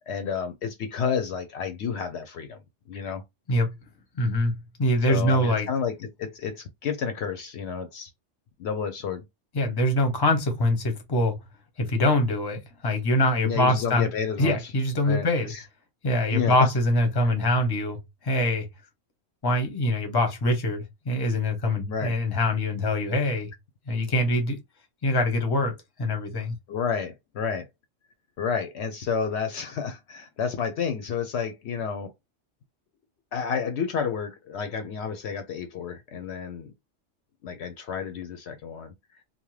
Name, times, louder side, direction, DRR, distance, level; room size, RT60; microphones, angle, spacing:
voice 1, 0.1-2.6 2.9-3.2 5.1-8.1 8.6-9.2 13.4-14.6 15.0-15.6 16.3-16.7 21.8-22.2 26.7-27.7 28.4-32.1 33.3-36.7 37.4-38.9, left 6 dB, 70° left, 0.8 m, -30 dB
voice 2, 4.2-5.7 9.5-11.4 11.8-14.1 14.4-15.5 16.0-18.0 18.2-18.7 19.4-23.5 23.9-24.6 25.0-26.5, left 1 dB, 25° left, 0.7 m, -24 dB
2.7 x 2.1 x 3.1 m
omnidirectional pair, 1.3 m